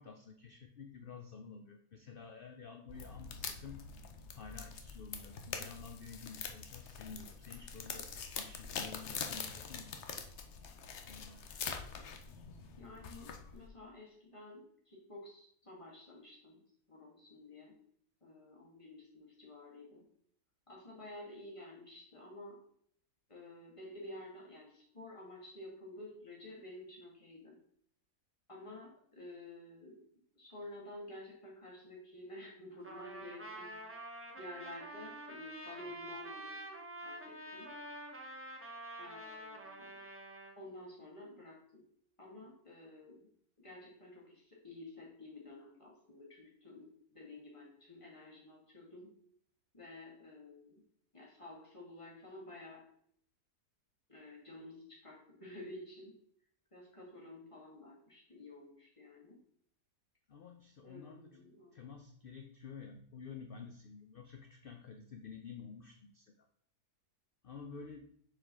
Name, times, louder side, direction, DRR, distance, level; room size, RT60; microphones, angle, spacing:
voice 1, 0.0-3.8 4.3-8.1 8.3-10.0 11.0-11.4 60.3-61.4 61.7-66.3 67.4-68.1, left 5 dB, 85° left, 5 dB, 0.4 m, -50 dB
sound 1, 2.9-13.7, left 6 dB, 55° left, 0.9 m, -44 dB
voice 2, 12.8-16.6 16.9-17.8 18.2-20.0 20.7-22.6 23.3-27.6 28.5-30.0 30.4-33.8 34.4-36.7 37.0-37.7 39.0-39.9 40.6-41.8 42.2-43.3 43.6-49.1 49.7-50.8 51.1-52.9 54.1-56.2 56.7-59.4 60.8-61.8, left 1 dB, 20° left, -3 dB, 1.9 m, -51 dB
Trumpet, 32.8-40.5, right 1 dB, 15° right, 0.5 m, -47 dB
6.7 x 4.5 x 3.7 m, 0.65 s
omnidirectional pair, 1.7 m